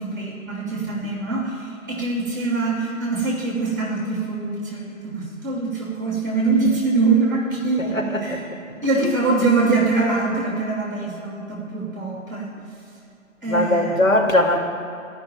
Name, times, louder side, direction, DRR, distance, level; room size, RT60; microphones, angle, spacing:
voice 1, 0.0-8.4 8.8-12.5 13.4-14.0, right 3 dB, 15° right, -3 dB, 2.0 m, -23 dB
voice 2, 7.9-8.4 13.5-14.6, left 1 dB, 65° left, 0 dB, 2.4 m, -19 dB
13.5 x 5.9 x 9.2 m, 2.6 s
hypercardioid pair, 175°, 42 cm